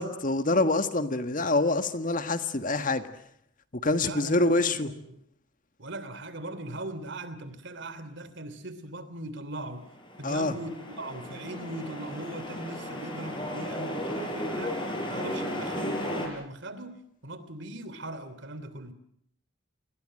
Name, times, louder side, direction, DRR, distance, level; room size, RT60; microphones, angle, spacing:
voice 1, 0.0-3.0 3.7-4.9 10.2-10.5, left 2 dB, 40° left, 9 dB, 1.7 m, -26 dB
voice 2, 4.0-5.2 5.8-9.9 10.2-18.9, right 1 dB, 60° right, 13 dB, 3.1 m, -40 dB
sound 1, 9.9-16.3, left 1 dB, 25° left, 6.8 m, -34 dB
29.5 x 21.0 x 7.7 m, 0.69 s
head